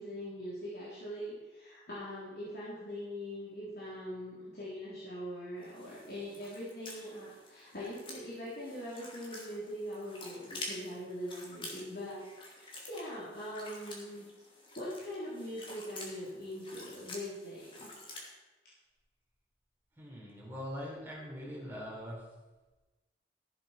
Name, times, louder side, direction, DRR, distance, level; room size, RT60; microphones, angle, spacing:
voice 1, 0.0-14.2 14.8-18.1, equal, 55° left, -9 dB, 3.7 m, -42 dB
sound 1, 5.6-18.3, left 2 dB, 30° left, 2.7 m, -49 dB
voice 2, 20.0-22.3, equal, 15° right, -4 dB, 3.8 m, -42 dB
15.0 x 7.6 x 5.8 m, 1.2 s
head